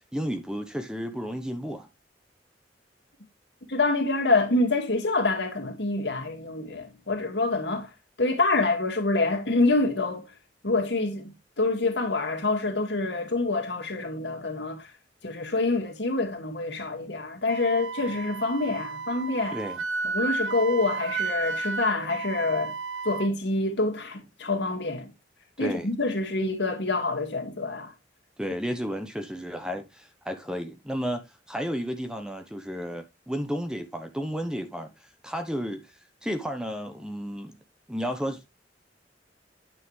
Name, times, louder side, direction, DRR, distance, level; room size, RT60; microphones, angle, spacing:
voice 1, 0.1-1.9 19.5-19.8 25.6-25.9 28.4-34.9 35.2-35.9 36.2-37.6 37.9-38.5, equal, 5° right, 0.9 m, -32 dB
voice 2, 3.7-7.9 8.2-10.3 10.6-14.9 15.2-19.6 20.0-22.7 23.0-25.1 25.6-27.9, left 3 dB, 70° left, 2.1 m, -26 dB
Wind instrument woodwind instrument, 17.5-23.3, right 4 dB, 85° right, 0.6 m, -32 dB
9.6 x 5.7 x 3.2 m
head